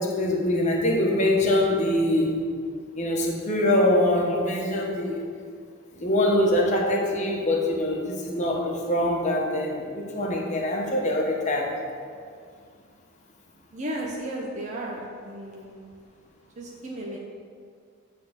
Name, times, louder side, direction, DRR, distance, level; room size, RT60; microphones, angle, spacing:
voice 1, 0.0-2.4 2.9-5.2 6.0-11.7, left 1 dB, 35° left, -1 dB, 1.1 m, -24 dB
voice 2, 13.7-15.9 16.6-17.2, right 1 dB, 35° right, -3 dB, 0.8 m, -34 dB
9.4 x 3.7 x 6.5 m, 2.1 s
head